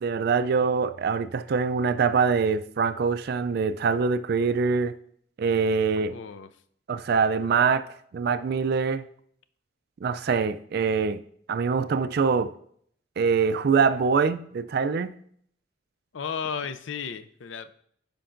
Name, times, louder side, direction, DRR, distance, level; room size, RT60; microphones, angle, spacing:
voice 1, 0.0-4.9 5.4-6.2 6.9-7.9 8.1-9.1 10.0-11.2 11.5-12.5 13.2-15.1, right 5 dB, 55° right, 0.3 m, -24 dB
voice 2, 6.1-6.5 16.1-17.7, left 6 dB, 75° left, 0.4 m, -34 dB
10.0 x 5.2 x 2.6 m
head